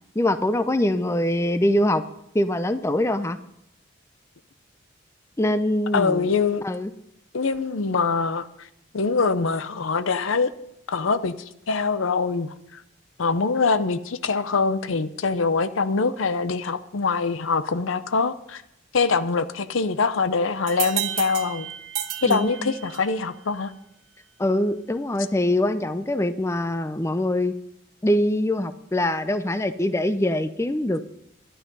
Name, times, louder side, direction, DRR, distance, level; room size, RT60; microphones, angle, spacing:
voice 1, 0.2-2.0 2.3-3.4 5.4-6.3 6.6-6.9 22.3-22.7 24.4-27.5 28.0-31.0, left 1 dB, 15° left, 11 dB, 0.5 m, -23 dB
voice 2, 5.9-6.6 7.3-8.5 8.9-10.5 10.9-11.3 11.7-12.5 13.2-18.6 18.9-21.7 22.2-23.7, left 4 dB, 90° left, 13 dB, 0.7 m, -23 dB
sound 1, 20.7-23.2, right 11 dB, 85° right, 1.3 m, -32 dB
12.0 x 11.0 x 5.4 m, 0.78 s
head